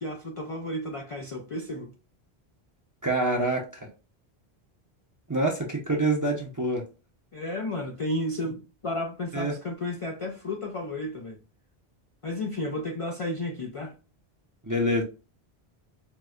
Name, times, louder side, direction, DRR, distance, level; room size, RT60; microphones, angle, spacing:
voice 1, 0.0-1.9 7.3-11.4 12.2-13.9, left 1 dB, 55° left, 0.3 m, -32 dB
voice 2, 3.0-3.9 5.3-6.8 9.3-9.5 14.6-15.0, right 1 dB, 25° right, 0.4 m, -26 dB
4.5 x 2.0 x 2.3 m
omnidirectional pair, 1.1 m